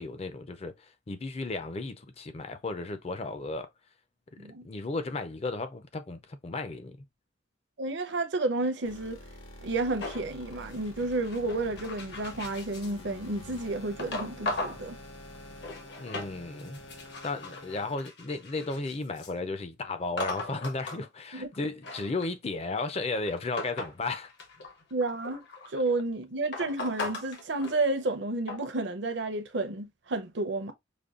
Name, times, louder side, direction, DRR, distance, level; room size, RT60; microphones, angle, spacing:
voice 1, 0.0-3.7 4.4-7.1 16.0-16.8 17.2-24.3, left 3 dB, 30° left, 0.4 m, -34 dB
voice 2, 7.8-9.2 9.6-15.0 21.3-21.5 24.9-25.4 25.7-30.7, right 2 dB, 60° right, 0.6 m, -31 dB
sound 1, 8.8-17.9, left 1 dB, 80° left, 1.3 m, -47 dB
sound 2, 10.0-13.0 14.0-14.8 15.3-16.3 16.6-19.3 20.2-21.0 21.5-24.0 24.3-25.9 26.5-28.2 28.5-28.7, left 2 dB, 55° left, 0.8 m, -38 dB
5.1 x 2.2 x 2.3 m
head